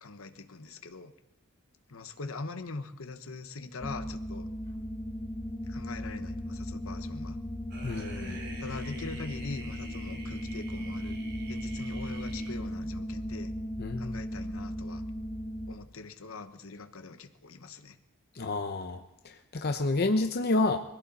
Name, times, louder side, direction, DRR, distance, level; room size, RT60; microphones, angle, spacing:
voice 1, 0.0-1.1 1.9-4.5 5.7-7.4 8.6-11.2 11.5-13.5 14.0-15.0 15.7-18.0, left 3 dB, 75° left, 9 dB, 1.1 m, -42 dB
sound 1, 3.8-15.8, equal, 15° left, 1.0 m, -37 dB
sound 2, 7.7-13.0, right 1 dB, 60° right, 4.3 m, -46 dB
voice 2, 7.8-8.4 13.8-14.2 18.3-20.8, left 2 dB, 50° left, 6 dB, 0.7 m, -29 dB
22.5 x 15.5 x 4.2 m, 0.96 s
head